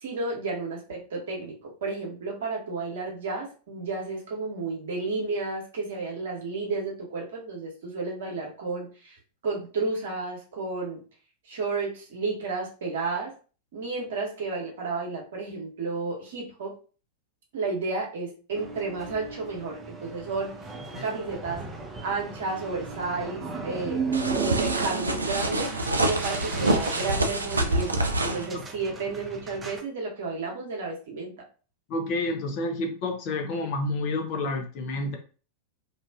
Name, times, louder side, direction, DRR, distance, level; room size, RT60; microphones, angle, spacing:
voice 1, 0.0-9.2 9.4-11.0 11.4-13.3 13.7-16.7 17.5-21.6 22.0-24.0 24.4-25.7 26.0-31.4, right 3 dB, 60° right, -1 dB, 0.9 m, -32 dB
sound 1, 18.5-29.8, right 5 dB, 15° right, 0.5 m, -36 dB
sound 2, 24.1-28.5, right 2 dB, 80° right, 0.3 m, -26 dB
voice 2, 31.9-35.2, left 2 dB, 45° left, 3 dB, 0.6 m, -29 dB
2.5 x 2.3 x 2.3 m, 0.37 s
figure-of-eight pair, 90°, 0 cm